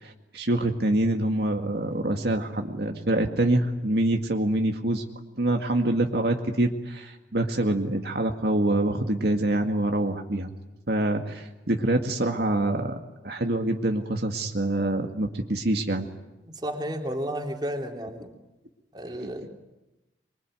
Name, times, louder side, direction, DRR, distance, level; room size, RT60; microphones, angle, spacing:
voice 1, 0.0-5.0 5.4-10.5 10.9-12.9 13.2-16.1 19.2-19.3, right 1 dB, 60° right, 3 dB, 2.0 m, -25 dB
voice 2, 16.6-18.3 18.9-19.5, equal, 25° right, 3 dB, 3.6 m, -32 dB
25.0 x 24.0 x 9.3 m, 1.0 s
head